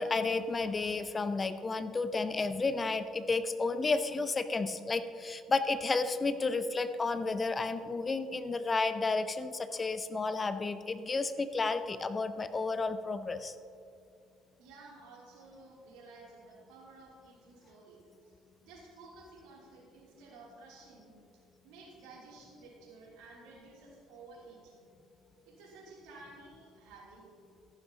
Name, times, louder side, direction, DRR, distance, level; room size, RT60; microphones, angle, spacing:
voice 1, 0.0-13.5, left 3 dB, 30° left, 11 dB, 0.6 m, -32 dB
voice 2, 14.6-18.4 18.6-21.2 21.6-24.9 25.4-27.2, right 3 dB, 70° right, -4 dB, 3.1 m, -53 dB
14.0 x 11.5 x 2.9 m, 2.4 s
hypercardioid pair, 55°, 0 cm